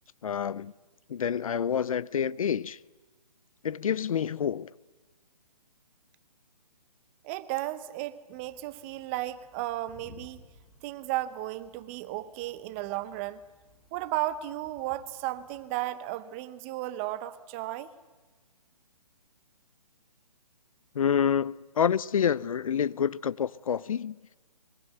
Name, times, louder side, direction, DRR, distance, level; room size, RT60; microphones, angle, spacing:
voice 1, 0.2-0.7 1.1-2.8 3.6-4.7 20.9-24.2, left 8 dB, 60° left, 0.7 m, -28 dB
voice 2, 7.2-10.4 10.8-13.4 13.9-17.9, right 15 dB, 20° right, 0.7 m, -34 dB
sound 1, 8.3-15.7, left 2 dB, 20° left, 6.3 m, -58 dB
24.0 x 23.0 x 8.0 m
hypercardioid pair, 150°, 20 cm